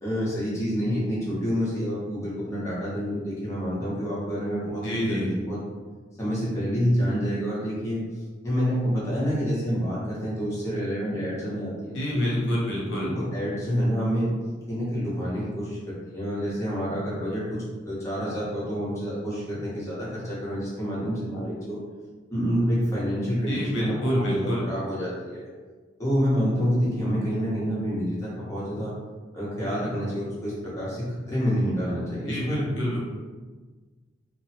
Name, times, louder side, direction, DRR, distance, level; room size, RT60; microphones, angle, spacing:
voice 1, 0.0-5.6 6.2-8.0 8.4-12.5 13.3-14.4 14.7-21.8 22.3-25.5 26.0-28.9 29.3-32.7, equal, 15° left, -8 dB, 1.0 m, -28 dB
voice 2, 4.8-5.3 11.9-13.2 23.5-24.7 32.3-33.0, equal, 75° left, -4 dB, 0.9 m, -27 dB
3.0 x 2.1 x 2.8 m, 1.4 s
head